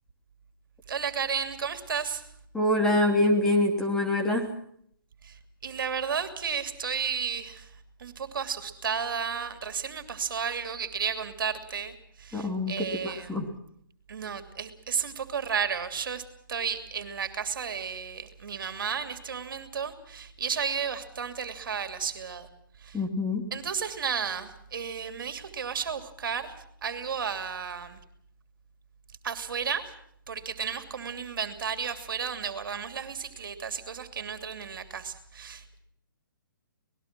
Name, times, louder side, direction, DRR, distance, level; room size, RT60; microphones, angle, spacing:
voice 1, 0.9-2.2 5.2-7.7 8.0-13.5 14.1-16.2 16.5-22.5 22.8-23.0 23.5-26.5 26.8-28.0 29.2-29.8 30.3-35.8, right 6 dB, 70° right, 8 dB, 2.9 m, -33 dB
voice 2, 2.5-4.5 12.3-13.5 22.9-23.5, left 1 dB, 5° left, 1 dB, 3.0 m, -25 dB
26.5 x 20.0 x 6.1 m, 0.67 s
hypercardioid pair, 155°, 12 cm